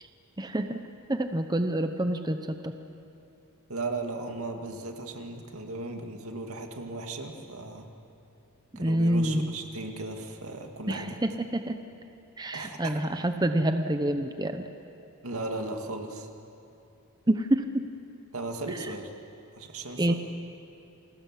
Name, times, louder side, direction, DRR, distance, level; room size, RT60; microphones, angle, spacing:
voice 1, 0.4-0.8 1.1-2.7 8.7-9.5 10.9-11.8 12.4-14.6 17.3-17.8 20.0-20.1, right 1 dB, 20° right, 7 dB, 0.8 m, -27 dB
voice 2, 3.7-7.9 8.8-11.2 12.5-13.0 15.2-16.3 18.3-19.1 19.5-20.2, right 2 dB, 75° right, 4 dB, 2.3 m, -36 dB
28.5 x 20.5 x 7.5 m, 2.8 s
head